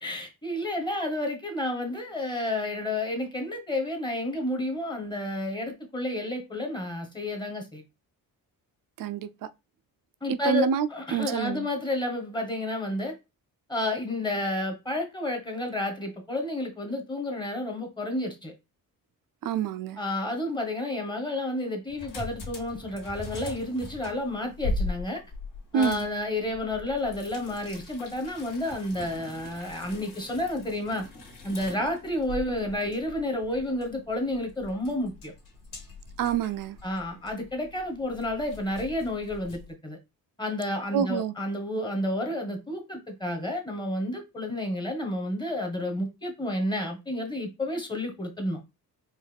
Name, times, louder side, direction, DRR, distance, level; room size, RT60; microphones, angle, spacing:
voice 1, 0.0-7.8 10.2-13.1 13.7-18.5 20.0-25.2 25.7-31.0 31.4-35.3 36.8-40.0 40.4-48.6, left 1 dB, 10° left, 1.2 m, -31 dB
voice 2, 9.0-9.3 10.3-11.7 19.4-20.0 25.7-26.1 36.2-36.8 40.9-41.3, right 8 dB, 65° right, 0.6 m, -27 dB
sound 1, 21.9-39.7, left 2 dB, 65° left, 2.0 m, -40 dB
4.6 x 2.6 x 3.4 m
cardioid pair, 120°, 36 cm